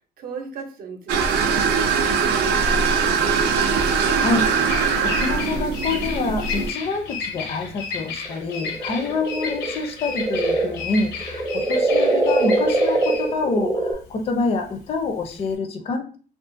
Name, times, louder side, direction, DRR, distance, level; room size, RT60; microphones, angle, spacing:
voice 1, 0.2-3.3 8.9-9.2, right 5 dB, 60° right, 4 dB, 0.7 m, -37 dB
sound 1, 1.1-6.7, right 5 dB, 90° right, 0.5 m, -21 dB
Bird vocalization bird call bird song, 2.3-15.5, left 5 dB, 85° left, 0.6 m, -33 dB
voice 2, 4.0-4.5 5.0-16.2, left 3 dB, 35° left, 5 dB, 0.4 m, -26 dB
sound 2, 8.2-13.9, right 2 dB, 20° right, 0.5 m, -22 dB
2.4 x 2.3 x 2.5 m, 0.40 s
cardioid pair, 110°, 17 cm